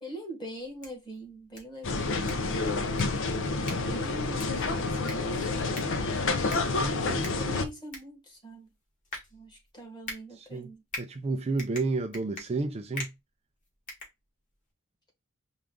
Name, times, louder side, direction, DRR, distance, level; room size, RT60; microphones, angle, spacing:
voice 1, 0.0-2.7 3.6-5.9 7.3-8.7 9.3-10.8, right 1 dB, 20° left, 1.4 m, -43 dB
sound 1, 0.6-14.7, left 2 dB, 35° left, 1.6 m, -45 dB
sound 2, 1.8-7.7, left 3 dB, 60° left, 0.6 m, -29 dB
voice 2, 6.8-7.3 10.4-10.7 11.0-13.1, right 3 dB, 30° right, 0.4 m, -31 dB
4.7 x 2.4 x 3.7 m
head